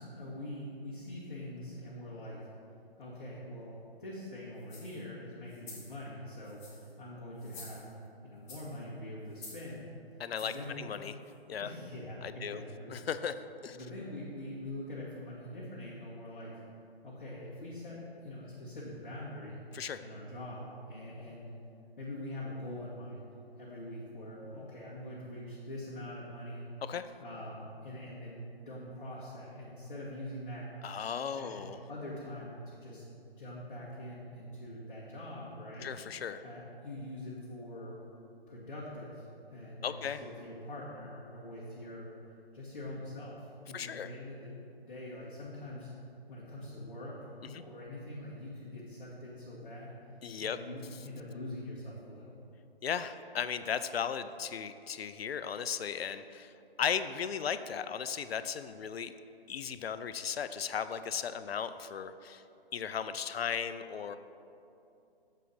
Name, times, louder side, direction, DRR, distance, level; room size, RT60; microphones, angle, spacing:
voice 1, 0.0-2.4 3.0-7.9 8.2-9.9 10.4-10.9 11.6-13.0 13.7-16.6 17.0-19.6 20.0-21.5 22.0-23.3 23.6-26.7 27.2-30.7 31.3-31.6 31.9-33.0 33.4-35.9 36.4-37.9 38.5-39.2 39.5-42.1 42.5-44.6 44.8-45.9 46.3-50.0 50.4-52.4, left 1 dB, 50° left, -8 dB, 1.7 m, -44 dB
sound 1, 4.6-5.0 5.5-5.9 6.4-6.9 7.4-8.1 8.5-8.8 9.3-9.7 10.3-10.7 11.2-11.3, left 3 dB, 30° left, 1.3 m, -50 dB
voice 2, 10.2-11.1 11.5-11.7 12.2-12.6 12.9-13.3 13.6-13.8 19.7-20.0 26.8-27.0 30.8-31.8 35.8-36.4 39.8-40.2 43.7-44.1 47.5-47.6 50.2-50.6 52.8-56.5 56.8-59.1 59.5-62.4 62.7-64.2, left 7 dB, 75° left, 12 dB, 0.5 m, -36 dB
7.4 x 4.0 x 5.4 m, 2.7 s
figure-of-eight pair, 140°, 31 cm